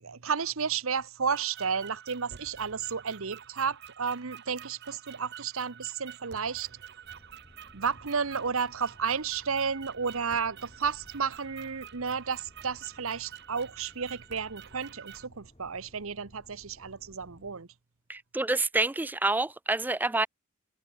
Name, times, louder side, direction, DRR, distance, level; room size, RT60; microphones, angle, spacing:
voice 1, 0.0-6.7 7.7-17.7, right 6 dB, 75° right, 1.0 m, -32 dB
sound 1, 1.3-15.3, right 9 dB, 50° right, 0.7 m, -48 dB
sound 2, 7.0-17.5, equal, 30° left, 3.0 m, -58 dB
voice 2, 18.1-20.3, right 2 dB, 10° right, 0.3 m, -27 dB
head